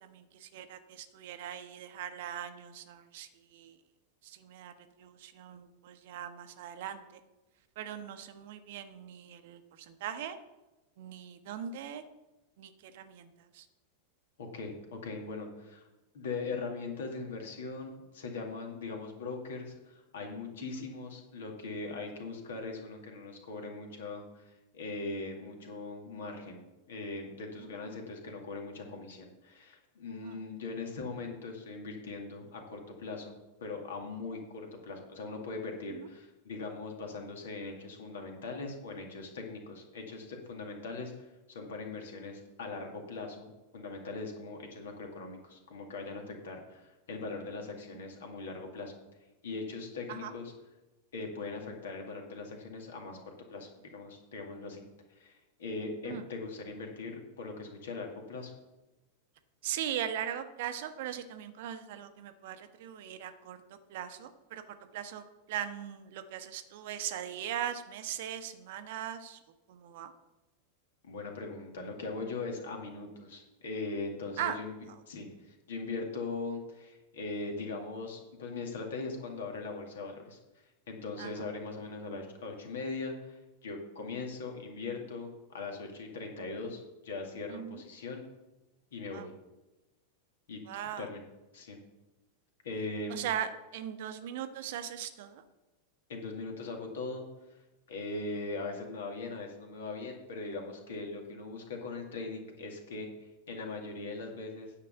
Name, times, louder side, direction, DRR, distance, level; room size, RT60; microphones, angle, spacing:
voice 1, 0.0-3.7 4.2-4.7 5.0-7.2 7.8-10.4 11.0-12.0 12.6-13.6 20.6-20.8 27.6-27.7 30.2-30.4 35.9-36.1 50.1-50.3 56.1-56.2 59.6-69.4 69.7-70.1 74.4-74.6 81.2-81.3 87.5-87.8 89.1-89.3 90.7-91.1 93.1-95.4, right 10 dB, 50° right, 10 dB, 0.9 m, -40 dB
voice 2, 14.4-15.8 16.1-26.6 26.9-48.9 49.4-50.5 51.1-54.8 55.1-58.5 71.0-74.8 75.1-80.4 80.9-88.2 88.9-89.3 90.5-91.2 91.5-91.8 92.6-93.3 96.1-97.2 97.9-103.1 103.5-104.7, left 3 dB, 60° left, 2 dB, 2.2 m, -40 dB
9.6 x 5.8 x 6.9 m, 1.0 s
figure-of-eight pair, 90°, 0 cm